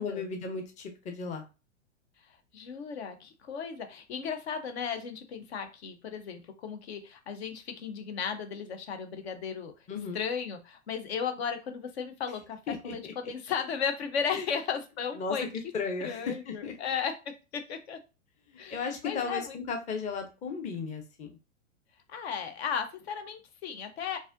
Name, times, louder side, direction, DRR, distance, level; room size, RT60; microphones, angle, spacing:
voice 1, 0.0-1.4 9.9-10.2 12.7-13.1 14.3-14.5 15.2-15.5 15.7-16.7 18.5-21.3, left 5 dB, 20° left, 4 dB, 0.7 m, -35 dB
voice 2, 2.5-9.7 10.1-15.4 16.0-18.0 18.6-19.6 22.1-24.2, left 7 dB, 60° left, 7 dB, 0.8 m, -35 dB
4.0 x 2.6 x 2.5 m, 0.30 s
hypercardioid pair, 105°, 36 cm